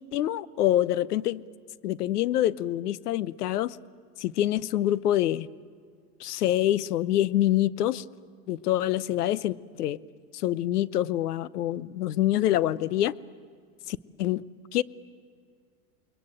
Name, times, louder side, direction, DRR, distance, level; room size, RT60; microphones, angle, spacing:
voice 1, 0.1-1.4 1.8-3.8 4.2-5.5 6.2-8.0 8.5-10.0 10.3-13.1 13.9-14.4 14.7-14.8, left 13 dB, 80° left, 19 dB, 0.9 m, -26 dB
28.5 x 21.0 x 9.0 m, 2.1 s
hypercardioid pair, 100°, 45 cm